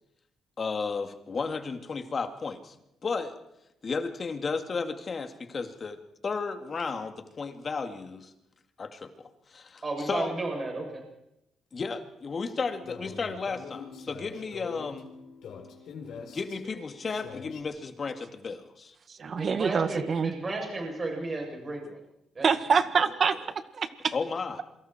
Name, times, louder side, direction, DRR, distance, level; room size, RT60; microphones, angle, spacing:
voice 1, 0.6-2.7 3.0-3.3 3.8-6.0 6.2-8.3 8.8-9.1 9.5-10.3 11.7-15.1 16.3-18.9 24.1-24.6, left 4 dB, 40° left, 6 dB, 2.5 m, -33 dB
voice 2, 9.8-11.0 19.3-22.0 22.3-22.5 23.0-23.1, right 2 dB, 30° right, 0 dB, 7.9 m, -33 dB
sound 1, 12.6-17.6, left 6 dB, 75° left, 4.1 m, -44 dB
voice 3, 19.2-20.3 22.4-23.3 23.8-24.1, right 6 dB, 50° right, 10 dB, 1.9 m, -25 dB
27.5 x 24.5 x 4.6 m, 0.86 s
cardioid pair, 90°, 0 cm